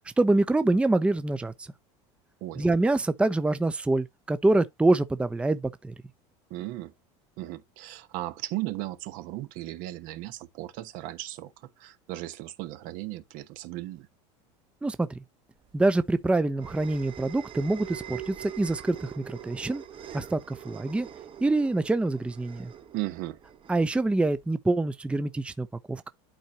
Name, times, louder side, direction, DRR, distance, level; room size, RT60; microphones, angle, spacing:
voice 1, 0.2-1.7 2.6-5.9 14.8-15.2 15.7-19.8 20.1-21.1 21.4-22.7 23.7-26.1, right 2 dB, 5° right, 0.6 m, -25 dB
voice 2, 6.5-6.9 7.4-14.1 22.9-23.4, right 16 dB, 65° right, 1.1 m, -36 dB
sound 1, 15.7-24.5, right 10 dB, 35° right, 1.1 m, -44 dB
11.5 x 4.5 x 2.8 m
supercardioid pair, 110°, 15 cm